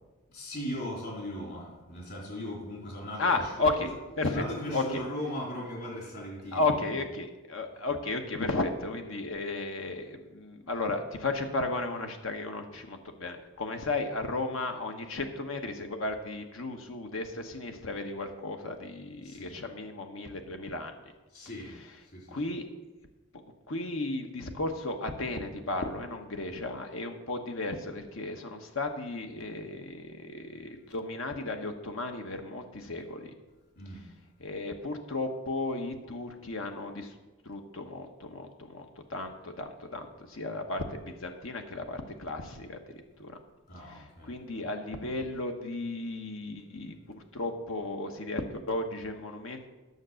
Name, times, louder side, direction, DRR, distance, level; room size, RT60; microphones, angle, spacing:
voice 1, 0.3-3.3 4.3-6.8 19.2-19.5 21.3-21.8 22.0-22.4 33.8-34.0 43.7-44.3, equal, 55° left, -3 dB, 3.6 m, -38 dB
voice 2, 3.2-3.9 4.2-4.4 4.7-5.0 6.5-20.9 22.3-22.6 23.7-33.3 34.4-37.1 37.4-42.8 43.2-43.4 43.8-49.6, left 2 dB, 75° left, 5 dB, 1.1 m, -34 dB
9.5 x 6.8 x 6.3 m, 1.2 s
head